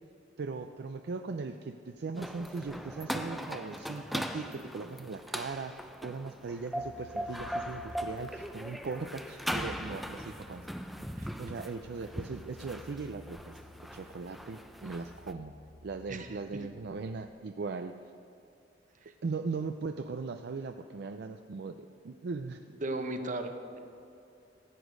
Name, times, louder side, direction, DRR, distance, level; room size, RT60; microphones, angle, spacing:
voice 1, 0.4-10.7 11.4-13.6 13.9-15.5 15.8-17.9 19.2-22.6, right 4 dB, 60° right, 7 dB, 0.4 m, -39 dB
sound 1, 2.1-15.3, equal, ahead, 0.5 m, -40 dB
sound 2, 6.8-17.3, left 2 dB, 55° left, 3.0 m, -55 dB
voice 2, 22.8-23.8, right 2 dB, 45° right, 6 dB, 1.0 m, -36 dB
15.5 x 8.2 x 5.2 m, 2.7 s
head